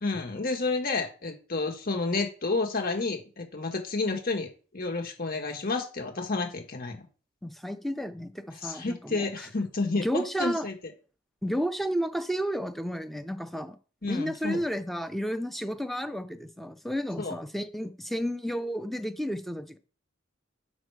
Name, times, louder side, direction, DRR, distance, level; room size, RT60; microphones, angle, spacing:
voice 1, 0.0-7.1 8.6-10.9 14.0-14.6 17.2-17.3, left 3 dB, 50° left, 1.5 m, -30 dB
voice 2, 7.4-9.5 9.9-10.7 11.4-13.8 14.0-19.8, equal, ahead, 0.6 m, -32 dB
6.2 x 5.3 x 4.7 m
head